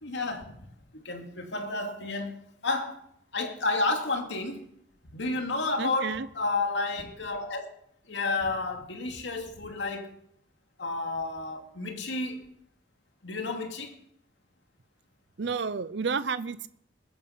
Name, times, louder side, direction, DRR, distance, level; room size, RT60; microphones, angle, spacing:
voice 1, 0.0-0.5 0.9-2.4 2.6-3.0 3.3-4.7 5.1-7.7 8.1-10.2 10.8-12.5 13.2-14.0, left 3 dB, 80° left, 2.4 m, -31 dB
voice 2, 5.8-6.3 15.4-16.7, right 5 dB, 70° right, 0.6 m, -31 dB
21.0 x 9.8 x 5.8 m
head